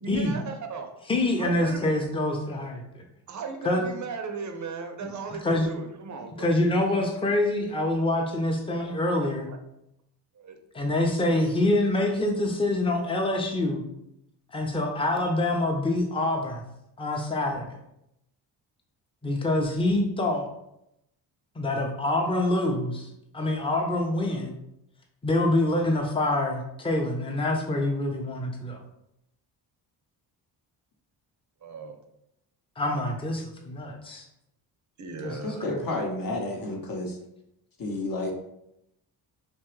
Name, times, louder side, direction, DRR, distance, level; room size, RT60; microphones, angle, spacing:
voice 1, 0.0-0.9 1.4-1.9 3.3-6.5 7.0-7.1 9.2-9.6 10.3-10.6 31.6-32.0 35.0-35.6, right 4 dB, 35° right, 5 dB, 0.6 m, -37 dB
voice 2, 1.1-3.0 3.6-3.9 5.0-5.1 5.4-5.7 6.4-9.5 10.7-13.8 14.5-16.6 17.0-17.8 19.2-20.5 21.6-23.1 23.3-24.5 25.2-28.8 32.8-34.2 35.2-35.4 35.7-35.8, left 1 dB, 10° left, 2 dB, 0.6 m, -26 dB
voice 3, 35.4-37.2 37.8-38.3, left 2 dB, 45° left, 1 dB, 0.9 m, -30 dB
3.1 x 2.2 x 3.0 m, 0.81 s
hypercardioid pair, 45°, 49 cm